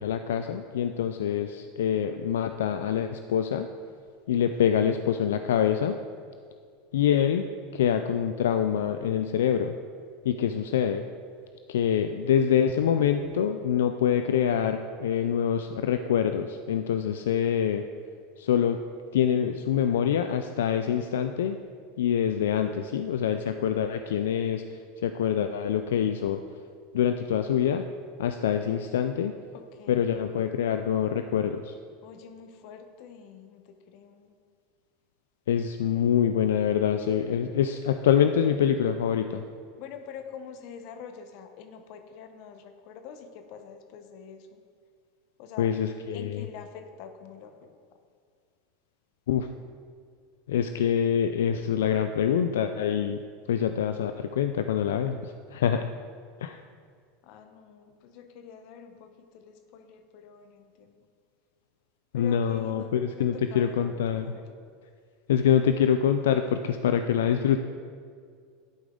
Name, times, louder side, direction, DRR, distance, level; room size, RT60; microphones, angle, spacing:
voice 1, 0.0-3.7 4.3-6.0 6.9-7.4 7.7-9.7 10.2-11.0 11.7-17.8 18.4-18.8 19.1-21.6 22.0-26.4 26.9-27.8 28.2-29.3 29.9-31.8 35.5-39.4 45.6-46.4 49.3-49.5 50.5-53.2 53.5-55.9 56.4-56.6 62.1-64.3 65.3-67.6, left 8 dB, 85° left, 8 dB, 0.3 m, -25 dB
voice 2, 29.5-30.1 32.0-34.3 39.8-44.6 45.4-45.7 46.1-47.7 57.2-61.1 62.1-64.6, left 7 dB, 60° left, 7 dB, 0.9 m, -46 dB
11.5 x 5.1 x 3.8 m, 2.1 s
supercardioid pair, 110°, 0 cm